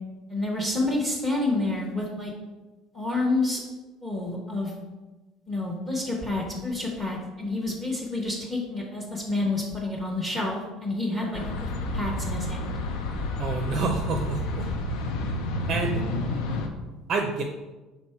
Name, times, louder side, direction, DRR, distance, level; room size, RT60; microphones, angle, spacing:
voice 1, 0.3-2.3 2.9-3.6 4.0-4.7 5.5-12.7, left 2 dB, 10° left, -2 dB, 0.9 m, -29 dB
sound 1, 11.3-16.7, left 2 dB, 70° left, 0.7 m, -30 dB
voice 2, 13.4-14.7 15.7-16.0 17.1-17.4, right 3 dB, 35° right, 3 dB, 0.5 m, -28 dB
6.0 x 3.6 x 4.4 m, 1.2 s
cardioid pair, 165°, 0 cm